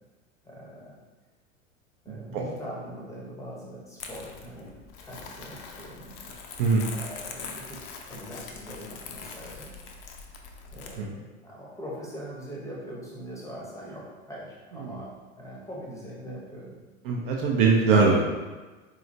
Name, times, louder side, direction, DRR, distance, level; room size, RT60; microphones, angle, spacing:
voice 1, 0.4-1.0 2.0-4.8 5.0-6.2 6.9-9.7 10.7-16.8, equal, 10° left, -4 dB, 0.7 m, -42 dB
voice 2, 2.1-2.4 6.6-6.9 11.0-11.1 14.8-15.0 17.0-18.2, right 4 dB, 40° right, 0 dB, 0.5 m, -22 dB
Crumpling crinkling, 4.0-11.0, left 5 dB, 45° left, 0.5 m, -42 dB
4.0 x 2.8 x 2.5 m, 1.3 s
figure-of-eight pair, 80°, 40 cm